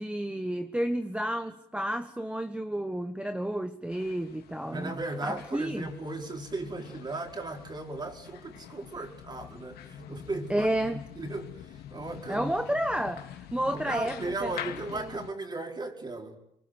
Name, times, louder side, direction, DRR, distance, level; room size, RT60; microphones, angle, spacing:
voice 1, 0.0-4.9 5.2-5.9 10.5-11.0 12.3-14.5 14.9-15.0, right 1 dB, 5° right, 1.2 m, -31 dB
sound 1, 3.9-15.3, left 10 dB, 70° left, 2.8 m, -46 dB
voice 2, 4.6-12.5 13.7-16.4, right 2 dB, 25° right, 5.0 m, -36 dB
25.5 x 24.0 x 8.1 m
cardioid pair, 110°, 17 cm